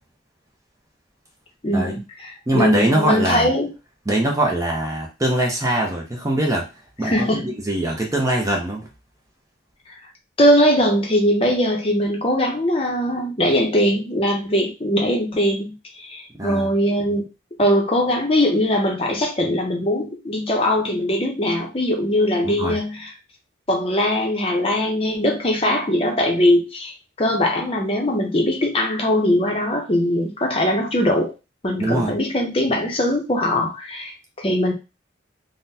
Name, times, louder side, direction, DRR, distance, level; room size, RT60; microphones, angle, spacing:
voice 1, 1.6-3.7 7.0-7.5 10.4-17.2 17.6-23.1 23.7-26.9 27.2-31.3 31.6-34.7, left 1 dB, 30° left, 1 dB, 0.7 m, -21 dB
voice 2, 2.5-3.5 4.1-6.7 7.0-8.9 16.4-16.7 22.4-22.8 31.8-32.1, right 1 dB, 15° right, 0 dB, 0.6 m, -22 dB
3.7 x 2.1 x 2.7 m, 0.28 s
head